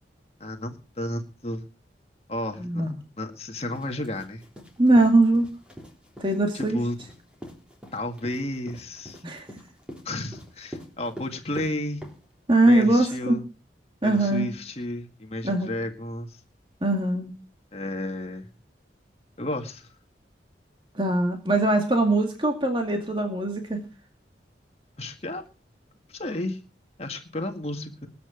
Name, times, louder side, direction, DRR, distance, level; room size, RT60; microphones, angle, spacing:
voice 1, 0.4-1.6 2.3-4.4 6.5-7.0 7.9-9.2 10.1-12.0 12.7-13.4 14.0-16.4 17.7-18.5 19.4-19.9 25.0-25.4 26.1-26.6 27.0-28.1, left 1 dB, 35° left, 4 dB, 1.9 m, -32 dB
sound 1, 3.5-12.7, equal, 5° right, 3.4 m, -44 dB
voice 2, 4.8-5.4 6.2-6.8 9.2-9.5 12.5-13.4 14.0-14.5 15.4-15.7 16.8-17.3 20.9-23.8, right 2 dB, 25° right, 3 dB, 2.2 m, -21 dB
21.0 x 8.8 x 5.1 m, 0.34 s
head